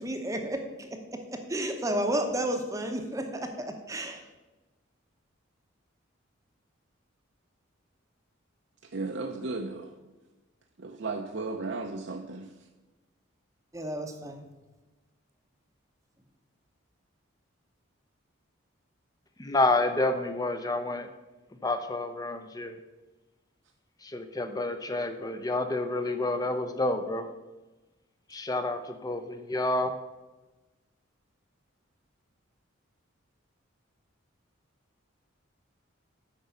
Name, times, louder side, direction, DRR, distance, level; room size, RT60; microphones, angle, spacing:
voice 1, 0.0-4.2 13.7-14.5, right 1 dB, 15° right, 5 dB, 0.7 m, -32 dB
voice 2, 8.9-9.9 10.8-12.5, right 3 dB, 60° right, 3 dB, 0.6 m, -35 dB
voice 3, 19.4-21.1 21.6-22.8 24.0-27.3 28.3-30.0, left 2 dB, 20° left, 8 dB, 0.5 m, -29 dB
8.7 x 5.4 x 6.7 m, 1.1 s
head